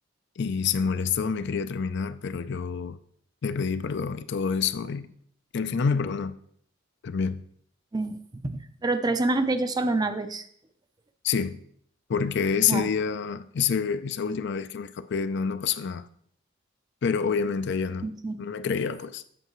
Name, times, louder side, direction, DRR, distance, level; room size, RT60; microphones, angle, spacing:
voice 1, 0.4-3.0 3.4-5.1 5.5-6.3 7.0-7.4 11.2-11.6 12.1-16.0 17.0-18.1 18.4-19.2, left 6 dB, 60° left, 0.4 m, -27 dB
voice 2, 8.4-10.4 12.7-12.9 18.0-18.4, right 2 dB, 20° right, 0.5 m, -27 dB
7.9 x 7.7 x 3.0 m
head